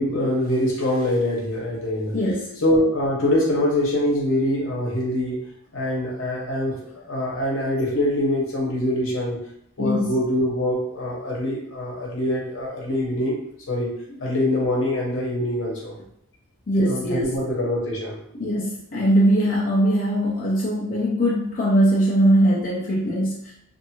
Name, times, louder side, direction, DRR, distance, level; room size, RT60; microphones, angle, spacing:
voice 1, 0.0-2.1 2.6-5.4 5.7-6.8 7.1-9.4 9.8-13.3 13.7-13.9 14.2-16.0 16.8-18.2, left 1 dB, 70° left, -3 dB, 0.9 m, -24 dB
voice 2, 2.1-2.5 9.8-10.2 16.7-17.3 18.4-23.5, equal, 40° left, -6 dB, 0.5 m, -21 dB
2.5 x 2.5 x 2.8 m, 0.71 s
head